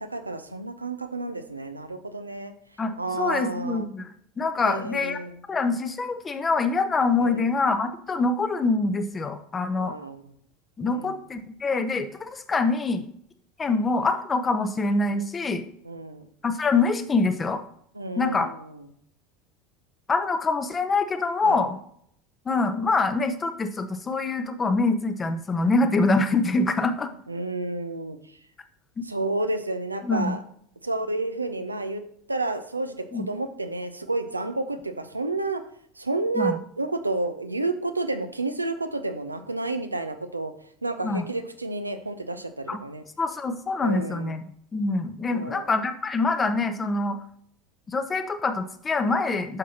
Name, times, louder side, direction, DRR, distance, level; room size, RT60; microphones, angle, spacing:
voice 1, 0.0-2.5 3.0-3.9 4.6-5.4 7.2-7.5 9.8-10.2 10.8-11.2 15.8-16.3 17.9-18.9 21.4-21.7 27.3-28.2 29.0-30.4 30.8-32.0 32.3-35.6 36.0-40.5 40.8-43.0 43.8-44.3 45.3-45.7, right 2 dB, 85° right, 8 dB, 0.5 m, -30 dB
voice 2, 2.8-4.1 4.4-5.2 5.5-10.0 10.8-13.1 13.6-15.7 16.4-17.6 18.2-18.5 20.1-21.8 22.5-27.1 29.0-29.1 30.0-30.4 33.1-33.3 36.4-36.6 41.0-41.3 42.7-42.8 43.2-44.4 44.7-47.2 47.9-49.6, left 3 dB, 25° left, 9 dB, 0.8 m, -25 dB
9.7 x 6.2 x 2.9 m, 0.67 s
figure-of-eight pair, 75°, 0 cm